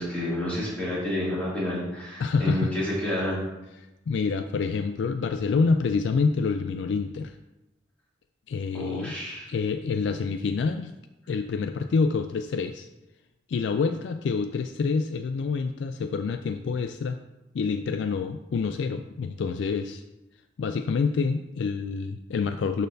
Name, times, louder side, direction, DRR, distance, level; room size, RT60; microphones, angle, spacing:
voice 1, 0.0-3.4 8.7-9.5, left 1 dB, 5° left, -9 dB, 2.4 m, -29 dB
voice 2, 2.2-2.7 4.1-7.4 8.5-9.1 9.5-10.9 11.3-12.9 13.5-17.2 17.5-20.0 20.6-22.9, left 4 dB, 70° left, 8 dB, 0.3 m, -27 dB
11.5 x 4.1 x 2.7 m, 0.99 s
head